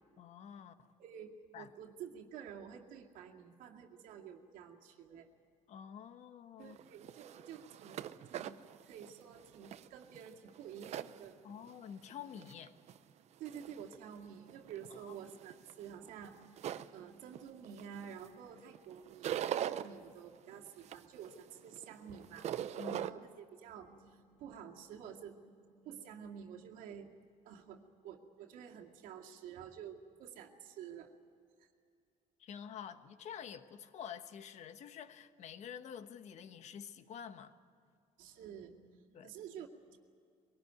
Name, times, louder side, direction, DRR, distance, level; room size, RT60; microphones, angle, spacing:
voice 1, 0.2-0.9 1.5-1.7 5.7-6.8 11.4-12.7 15.0-15.2 22.8-23.2 32.4-37.5 39.1-39.3, left 8 dB, 55° left, 10 dB, 1.2 m, -48 dB
voice 2, 1.0-5.3 6.6-11.4 13.4-22.5 23.0-31.1 31.6-31.7 38.2-40.0, right 8 dB, 80° right, 2 dB, 2.3 m, -50 dB
sound 1, 6.7-11.7 12.1-13.0 13.5-14.0 14.5-18.3 18.6-19.9 20.4-23.1, right 11 dB, 55° right, 0.7 m, -42 dB
22.5 x 18.5 x 9.4 m, 2.3 s
cardioid pair, 135°, 14 cm